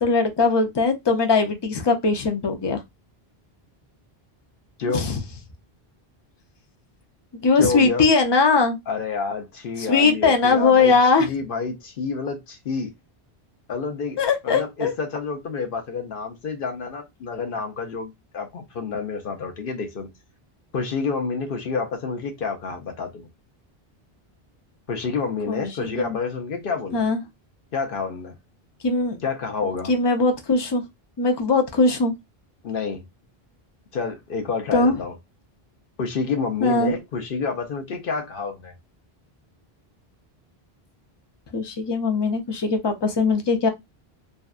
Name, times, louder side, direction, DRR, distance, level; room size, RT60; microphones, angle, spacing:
voice 1, 0.0-2.8 4.9-5.2 7.4-8.8 9.8-11.3 14.2-14.9 25.5-26.2 26.9-27.2 28.8-29.2 29.9-30.8 31.2-32.1 34.7-35.0 36.6-36.9 41.5-43.7, left 4 dB, 40° left, 0.4 m, -20 dB
voice 2, 7.6-8.0 8.9-10.9 11.2-12.9 13.7-14.2 14.4-20.1 20.7-23.3 24.9-27.1 27.7-28.3 29.2-29.9 32.6-33.0 33.9-35.1 36.0-38.7, left 5 dB, 65° left, 0.8 m, -28 dB
2.7 x 2.2 x 2.3 m
omnidirectional pair, 1.1 m